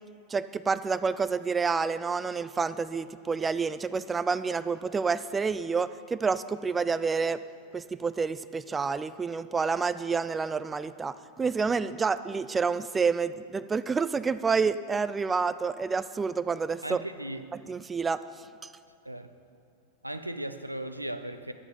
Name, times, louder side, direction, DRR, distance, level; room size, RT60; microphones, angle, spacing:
voice 1, 0.3-7.4 7.7-17.0 17.7-18.2, right 5 dB, 15° right, 0.3 m, -28 dB
voice 2, 16.8-17.5 19.0-19.3 20.0-21.5, right 1 dB, 85° right, 0.5 m, -36 dB
11.0 x 7.9 x 7.1 m
figure-of-eight pair, 90°, 0 cm